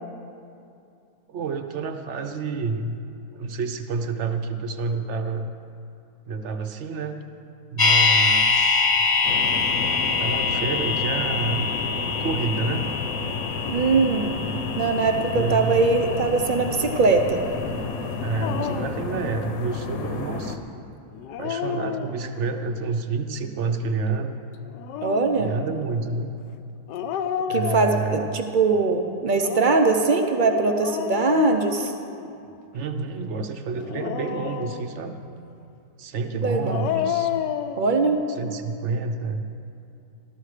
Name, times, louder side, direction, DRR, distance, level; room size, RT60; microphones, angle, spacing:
voice 1, 1.3-3.0 3.3-5.5 6.3-7.2 7.7-8.9 10.2-11.7 12.1-12.9 15.3-15.8 18.2-20.6 21.4-24.4 25.4-26.3 27.5-28.4 32.7-35.2 36.0-37.3 38.4-39.4, right 4 dB, 55° right, 7 dB, 0.9 m, -29 dB
sound 1, 7.8-17.8 18.1-18.2, left 4 dB, 15° left, 0.8 m, -25 dB
sound 2, 9.2-20.6, left 4 dB, 60° left, 1.2 m, -31 dB
voice 2, 13.7-14.3 14.8-17.4 25.0-25.5 27.5-31.9 36.4-36.8 37.8-38.2, right 3 dB, 75° right, 5 dB, 0.4 m, -21 dB
Dog, 18.4-19.0 21.1-22.5 24.6-25.4 26.9-28.4 29.3-32.5 33.7-35.1 36.5-37.8, left 9 dB, 85° left, 1.2 m, -31 dB
14.0 x 13.0 x 4.9 m, 2.6 s
omnidirectional pair, 1.9 m